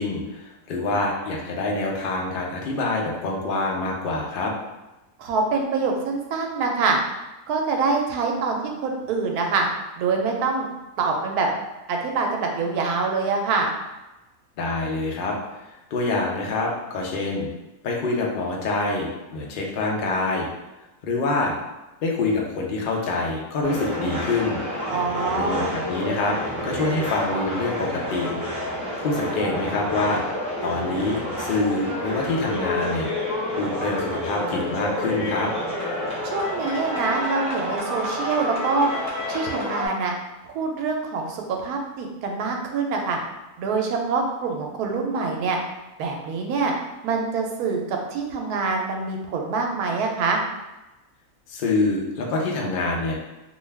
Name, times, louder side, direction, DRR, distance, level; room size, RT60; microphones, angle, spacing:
voice 1, 0.0-4.5 14.6-15.3 15.6-17.5 17.8-20.5 21.0-21.5 22.0-24.6 25.3-26.4 26.6-28.3 29.0-30.2 30.6-33.1 33.6-35.5 51.5-53.2, left 3 dB, 75° left, -1 dB, 0.4 m, -26 dB
voice 2, 5.2-7.0 7.5-9.7 10.0-10.7 11.0-11.5 11.9-13.7 24.9-25.7 36.2-38.9 39.3-40.1 40.4-43.2 43.6-45.6 46.0-46.7 47.0-50.4, right 4 dB, 85° right, 2 dB, 1.1 m, -25 dB
sound 1, 23.6-39.9, left 1 dB, 5° left, 1.0 m, -29 dB
2.6 x 2.3 x 3.2 m, 1.0 s
omnidirectional pair, 1.6 m